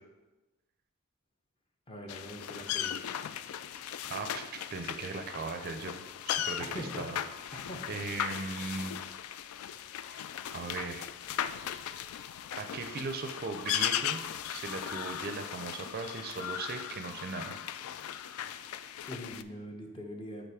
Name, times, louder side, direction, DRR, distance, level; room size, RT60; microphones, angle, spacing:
voice 1, 1.9-3.1 6.6-7.0 7.5-8.0 19.0-20.5, equal, 25° left, 2 dB, 0.8 m, -43 dB
sound 1, 2.1-19.4, left 10 dB, 75° left, 0.3 m, -37 dB
voice 2, 4.1-7.2 7.9-9.0 10.1-10.3 10.5-11.1 12.5-14.2 14.5-17.6, right 4 dB, 45° right, 6 dB, 0.4 m, -38 dB
5.6 x 4.1 x 4.8 m, 1.1 s
head